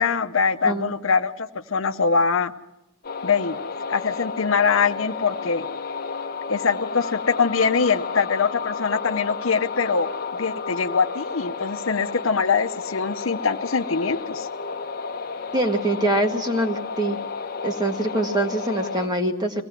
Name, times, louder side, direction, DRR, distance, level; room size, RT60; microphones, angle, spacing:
voice 1, 0.0-2.5 3.2-3.6 3.9-5.6 6.5-14.5, left 5 dB, 70° left, 8 dB, 0.9 m, -23 dB
sound 1, 3.0-19.1, left 5 dB, 45° left, 1.0 m, -32 dB
voice 2, 15.5-17.2 17.6-19.6, right 1 dB, 20° right, 4 dB, 1.8 m, -24 dB
23.5 x 17.5 x 7.5 m, 0.88 s
head